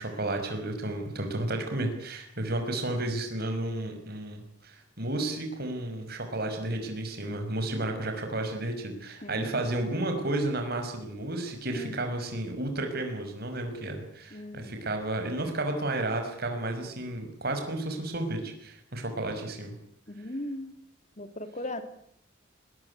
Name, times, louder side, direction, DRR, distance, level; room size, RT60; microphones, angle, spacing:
voice 1, 0.0-19.8, right 1 dB, 50° right, 5 dB, 5.5 m, -32 dB
voice 2, 9.2-9.6 11.7-11.9 14.3-14.7 20.2-20.7 21.2-21.8, left 1 dB, 35° left, 9 dB, 2.8 m, -37 dB
21.5 x 21.0 x 9.7 m, 0.69 s
head